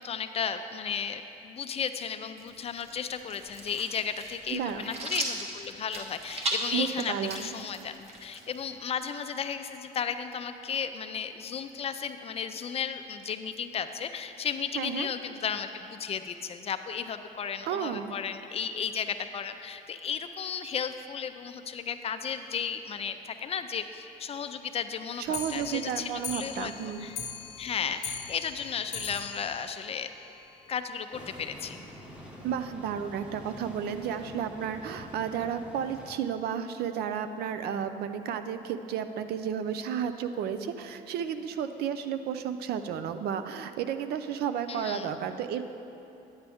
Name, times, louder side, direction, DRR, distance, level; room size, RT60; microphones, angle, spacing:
voice 1, 0.0-26.7 27.0-27.2 27.6-30.1 30.7-31.8 44.7-45.1, left 7 dB, 35° left, 9 dB, 0.4 m, -34 dB
sound 1, 2.4-8.8, right 2 dB, 35° right, 1.1 m, -37 dB
voice 2, 4.5-4.9 6.7-7.5 14.8-15.1 17.7-18.1 25.2-27.1 32.4-45.6, right 8 dB, 70° right, 9 dB, 0.5 m, -32 dB
Clock, 25.2-30.7 31.1-31.2 31.4-31.5 31.9-32.0 32.2-32.3 33.0-33.1 33.8-33.9 34.6-34.7, left 6 dB, 70° left, 0.8 m, -41 dB
sound 2, 31.1-36.1, equal, 5° right, 1.0 m, -46 dB
9.5 x 8.9 x 3.5 m, 2.9 s
cardioid pair, 110°, 17 cm